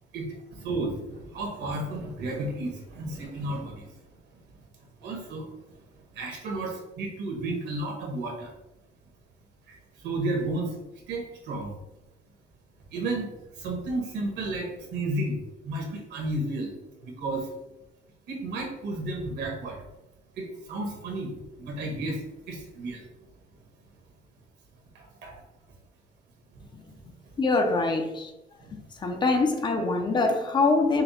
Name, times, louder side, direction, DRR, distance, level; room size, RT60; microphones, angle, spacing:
voice 1, 0.1-3.9 5.0-5.4 6.1-8.5 9.7-10.7 11.1-11.7 12.9-13.3 13.6-16.7 17.0-17.5 18.3-19.8 20.4-21.3 21.6-23.0 24.9-25.4 26.5-26.7 28.6-28.7, right 2 dB, 75° right, 1.4 m, -32 dB
voice 2, 27.4-28.3 28.9-31.0, left 3 dB, 25° left, 0.4 m, -24 dB
5.6 x 2.1 x 4.1 m
cardioid pair, 170°, 18 cm